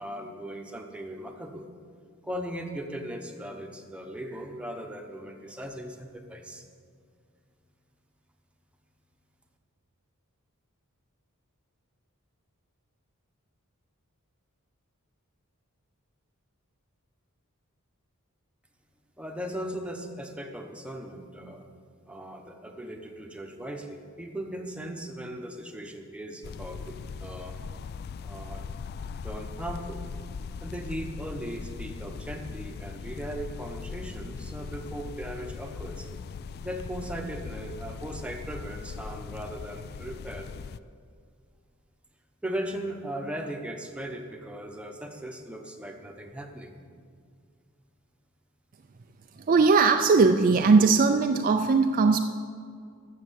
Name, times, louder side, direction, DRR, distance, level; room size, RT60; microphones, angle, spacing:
voice 1, 0.0-1.7 2.2-6.6 19.2-21.7 22.0-27.6 28.2-28.7 29.2-30.1 30.6-36.1 36.6-40.5 42.4-46.8, right 1 dB, 5° right, 3 dB, 1.0 m, -38 dB
sound 1, 26.4-40.8, left 5 dB, 45° left, 0.3 m, -39 dB
voice 2, 49.5-52.2, right 4 dB, 40° right, 6 dB, 0.4 m, -19 dB
12.0 x 7.4 x 7.4 m, 2.2 s
head